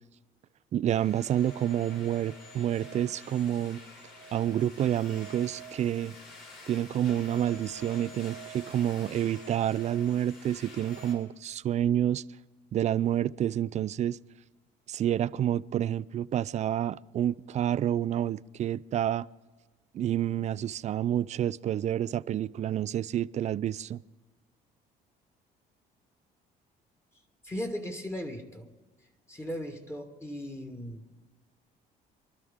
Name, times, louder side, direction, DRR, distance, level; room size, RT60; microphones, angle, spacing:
voice 1, 0.7-3.8 4.3-6.1 6.7-12.2 12.7-14.2 14.9-19.3 19.9-24.0, right 11 dB, 45° right, 0.4 m, -29 dB
sound 1, 0.9-11.1, right 1 dB, 80° left, 5.5 m, -47 dB
voice 2, 27.4-28.7 29.3-31.0, equal, 15° left, 1.6 m, -37 dB
24.5 x 12.5 x 3.6 m
cardioid pair, 110°, 17 cm